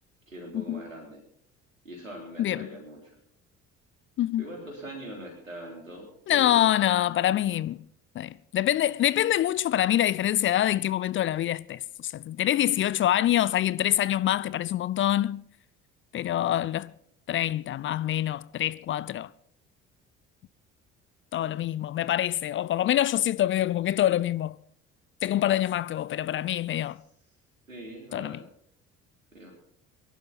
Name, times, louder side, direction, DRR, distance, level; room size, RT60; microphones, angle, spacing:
voice 1, 0.3-1.2 1.8-3.2 4.4-6.7 27.7-28.4 29.3-29.5, right 1 dB, 85° right, 3.5 m, -42 dB
voice 2, 6.3-7.8 8.2-15.4 16.1-16.9 17.3-19.3 21.3-24.5 25.2-27.0 28.1-28.4, left 12 dB, 30° left, 0.5 m, -25 dB
23.0 x 11.5 x 4.1 m
figure-of-eight pair, 50°, 38 cm